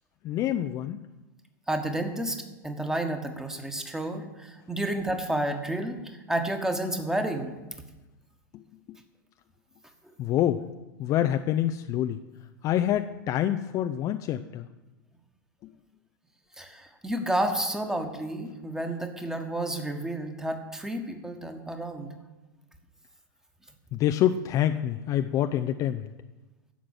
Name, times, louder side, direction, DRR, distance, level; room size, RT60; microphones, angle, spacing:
voice 1, 0.2-1.0 8.5-8.6 8.9-9.0 10.2-10.6 11.0-12.2 12.6-14.7 15.6-15.7 23.9-26.1, left 11 dB, 30° left, 7 dB, 0.5 m, -26 dB
voice 2, 1.7-7.6 16.6-22.1, right 1 dB, 5° right, 6 dB, 1.4 m, -31 dB
11.5 x 7.4 x 7.4 m, 1.1 s
figure-of-eight pair, 90°, 11 cm